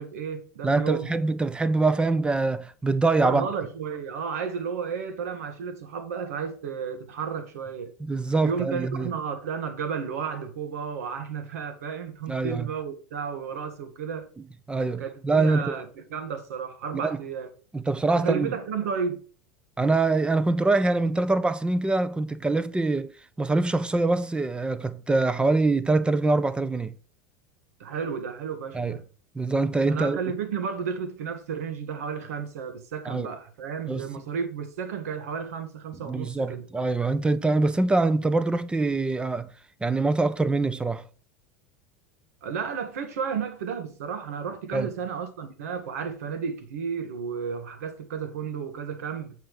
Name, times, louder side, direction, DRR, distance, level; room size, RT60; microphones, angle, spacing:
voice 1, 0.0-1.1 3.2-7.9 8.4-14.3 15.0-17.5 18.1-19.2 27.8-29.0 29.9-36.7 42.4-49.4, right 6 dB, 75° right, 1.8 m, -32 dB
voice 2, 0.6-3.5 8.1-9.1 12.3-12.7 14.7-15.8 17.0-17.2 17.7-18.5 19.8-23.1 23.4-26.9 28.7-29.0 29.3-30.2 33.1-33.3 33.9-34.1 36.0-39.5 39.8-41.0 44.7-44.9, right 3 dB, 10° right, 0.9 m, -24 dB
7.8 x 5.6 x 5.4 m
hypercardioid pair, 90°, 8 cm